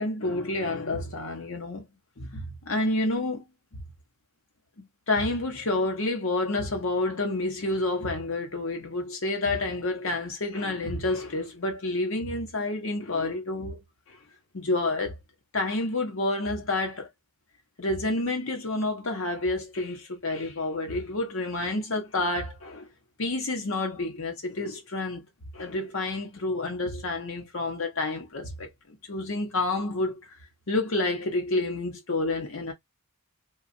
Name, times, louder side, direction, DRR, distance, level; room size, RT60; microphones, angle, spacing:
voice 1, 0.0-1.9 2.2-3.4 4.8-13.8 14.1-14.2 14.5-15.2 15.5-17.1 17.8-22.9 23.2-25.2 25.5-30.3 30.7-32.7, left 2 dB, 65° left, 0.9 m, -29 dB
3.0 x 2.3 x 2.6 m
head